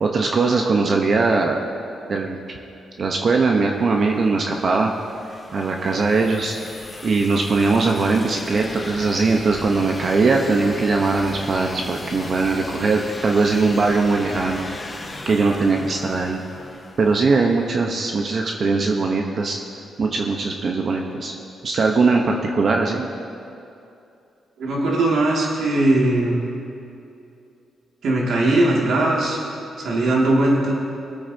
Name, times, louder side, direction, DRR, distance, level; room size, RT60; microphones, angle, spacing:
voice 1, 0.0-1.6 2.1-2.4 3.0-4.9 5.5-14.7 15.3-16.4 17.0-19.6 20.0-21.3 21.6-23.1, right 3 dB, 55° right, 1 dB, 1.0 m, -20 dB
sound 1, 4.0-17.8, left 2 dB, 30° left, 1.3 m, -37 dB
voice 2, 24.6-26.4 28.0-29.4 29.8-30.7, right 2 dB, 75° right, -3 dB, 2.4 m, -19 dB
22.0 x 8.4 x 2.9 m, 2.7 s
cardioid pair, 70°, 0 cm